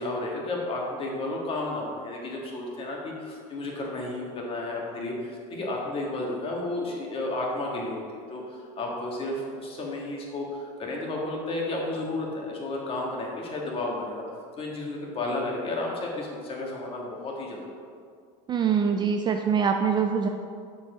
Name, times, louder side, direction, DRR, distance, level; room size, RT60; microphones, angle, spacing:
voice 1, 0.0-14.2 14.6-17.7, left 2 dB, 30° left, -2 dB, 1.6 m, -32 dB
voice 2, 18.5-20.3, right 6 dB, 25° right, 4 dB, 0.3 m, -24 dB
7.0 x 4.7 x 4.9 m, 2.2 s
supercardioid pair, 125°, 19 cm